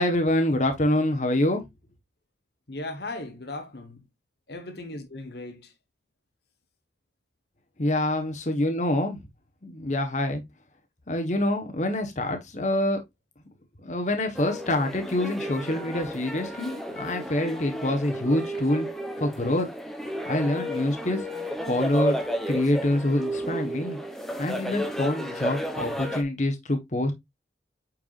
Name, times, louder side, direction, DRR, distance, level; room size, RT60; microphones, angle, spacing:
voice 1, 0.0-1.7 7.8-9.2 9.6-10.4 11.1-13.0 13.8-18.9 19.2-19.7 20.2-21.2 21.7-22.2 22.5-24.0 24.4-27.1, left 1 dB, 40° left, 1.2 m, -26 dB
voice 2, 2.7-4.0 4.5-5.7, left 2 dB, 60° left, 1.2 m, -37 dB
sound 1, 14.3-26.2, equal, ahead, 0.9 m, -32 dB
8.8 x 4.7 x 2.5 m
head